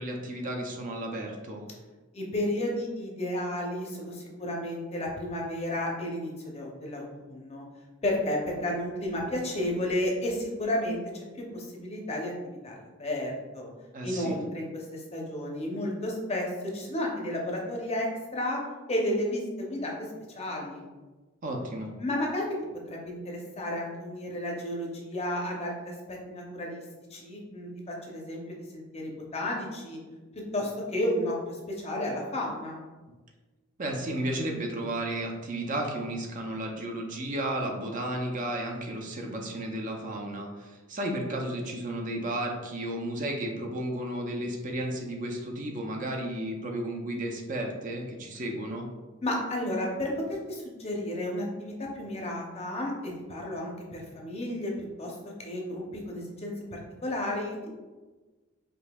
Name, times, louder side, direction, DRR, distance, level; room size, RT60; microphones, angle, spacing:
voice 1, 0.0-1.6 13.9-14.4 21.4-21.9 33.8-48.9, right 1 dB, 40° right, 1 dB, 0.5 m, -33 dB
voice 2, 2.1-7.6 8.0-13.7 14.0-16.5 16.7-18.6 18.9-19.9 20.3-20.9 22.0-22.5 22.9-25.9 26.3-26.8 27.1-30.0 30.5-32.8 49.2-54.7 55.0-57.7, left 1 dB, 30° left, -1 dB, 0.6 m, -32 dB
5.1 x 2.6 x 2.3 m, 1.2 s
head